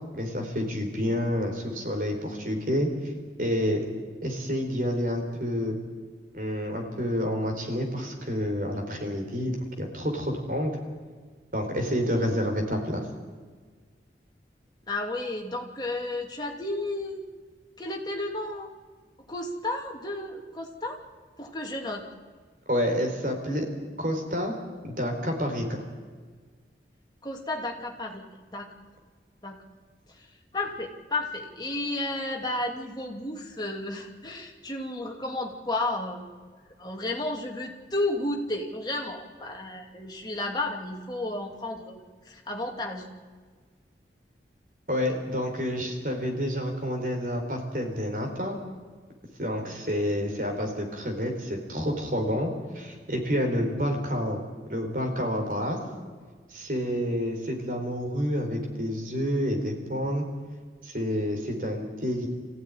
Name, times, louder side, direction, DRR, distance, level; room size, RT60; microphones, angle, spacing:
voice 1, 0.1-3.1 3.4-3.8 4.2-5.8 6.3-10.8 11.5-13.0 22.7-23.7 24.0-24.6 24.8-25.8 44.9-48.6 49.4-54.4 54.7-55.8 56.5-60.3 60.8-62.3, equal, 50° right, 2 dB, 4.2 m, -29 dB
voice 2, 14.9-17.3 17.8-18.7 19.3-21.0 21.4-22.1 27.2-28.7 29.4-29.6 30.2-30.3 30.5-36.3 36.8-43.1, left 2 dB, 25° left, 1 dB, 2.5 m, -32 dB
25.0 x 15.5 x 9.9 m, 1.5 s
head